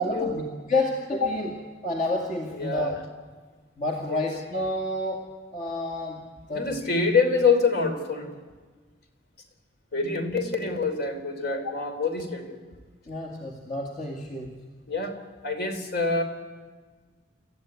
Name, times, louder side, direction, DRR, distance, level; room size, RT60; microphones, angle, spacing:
voice 1, 0.0-2.9 3.8-6.9 11.6-11.7 13.1-14.7, left 2 dB, 40° left, 0 dB, 2.2 m, -30 dB
voice 2, 2.5-3.0 4.1-4.3 6.5-8.3 9.9-12.6 14.9-15.2 15.4-16.2, left 4 dB, 55° left, 6 dB, 3.4 m, -26 dB
28.0 x 14.0 x 9.7 m, 1.5 s
head